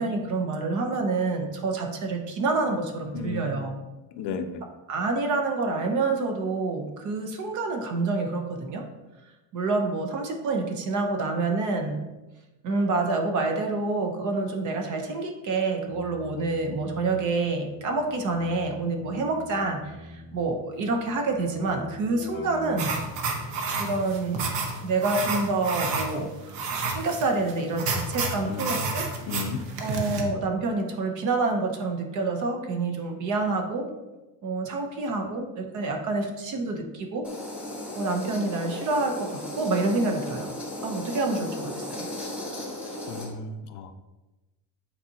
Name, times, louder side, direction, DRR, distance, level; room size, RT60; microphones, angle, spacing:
voice 1, 0.0-3.8 4.9-8.8 9.5-12.0 12.6-22.9 23.8-24.5 24.8-29.1 29.8-33.9 34.4-37.3 37.9-40.5 40.8-42.1, right 3 dB, 40° right, 4 dB, 0.8 m, -27 dB
voice 2, 3.1-3.6 4.1-4.6 28.4-28.9 29.3-29.6 43.1-43.9, left 4 dB, 60° left, 7 dB, 0.6 m, -34 dB
Keyboard (musical), 15.8-24.3, left 4 dB, 30° left, 1.2 m, -43 dB
sound 1, 22.8-30.2, right 4 dB, 65° right, 1.1 m, -30 dB
sound 2, 37.2-43.3, left 1 dB, 5° right, 1.2 m, -36 dB
8.8 x 4.1 x 2.8 m, 1.1 s
cardioid pair, 180°, 47 cm